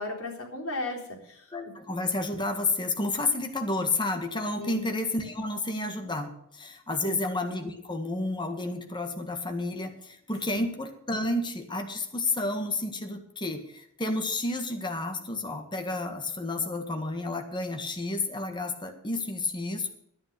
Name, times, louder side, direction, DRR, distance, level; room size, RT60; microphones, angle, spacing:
voice 1, 0.0-1.5 4.6-4.9 7.0-7.2 10.5-10.7, left 2 dB, 80° left, -2 dB, 3.8 m, -35 dB
voice 2, 1.5-19.9, left 2 dB, 20° left, 5 dB, 1.6 m, -31 dB
11.0 x 9.7 x 6.8 m, 0.73 s
head